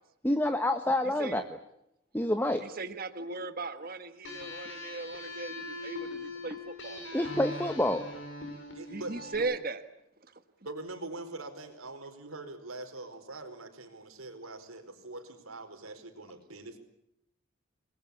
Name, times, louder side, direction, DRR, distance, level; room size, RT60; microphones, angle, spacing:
voice 1, 0.2-1.4 2.1-2.6 7.1-8.1, left 1 dB, 10° left, 8 dB, 1.2 m, -27 dB
voice 2, 1.0-1.4 2.6-7.1 8.9-9.8 10.6-10.7, right 3 dB, 45° right, 10 dB, 1.5 m, -38 dB
sound 1, 4.2-9.4, left 2 dB, 60° left, 7.8 m, -41 dB
voice 3, 8.7-9.5 10.6-16.8, right 2 dB, 85° right, 8 dB, 4.9 m, -43 dB
29.0 x 21.0 x 8.5 m, 0.82 s
head